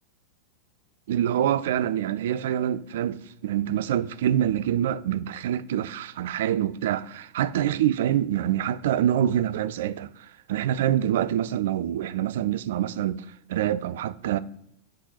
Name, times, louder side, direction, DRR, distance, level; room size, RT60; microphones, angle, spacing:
voice 1, 1.1-13.2 13.5-14.4, right 11 dB, 55° right, 0.3 m, -26 dB
8.0 x 3.9 x 5.6 m
figure-of-eight pair, 90°, 0 cm